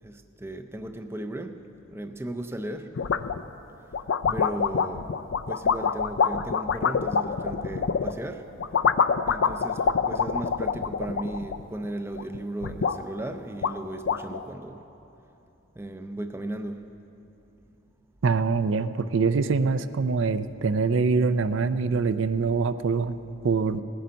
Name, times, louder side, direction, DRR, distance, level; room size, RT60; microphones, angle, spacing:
voice 1, 0.0-1.6 1.9-2.9 4.3-5.1 5.5-8.4 9.3-14.8 15.8-16.8, right 1 dB, 10° right, 7 dB, 0.5 m, -36 dB
sound 1, 3.0-3.5 3.9-8.2 8.6-11.9 12.2-13.0 13.3-13.4 13.6-14.4, left 6 dB, 60° left, 0.4 m, -26 dB
voice 2, 18.2-23.2 23.4-23.8, right 4 dB, 65° right, 13 dB, 0.5 m, -24 dB
19.5 x 10.0 x 5.2 m, 2.9 s
head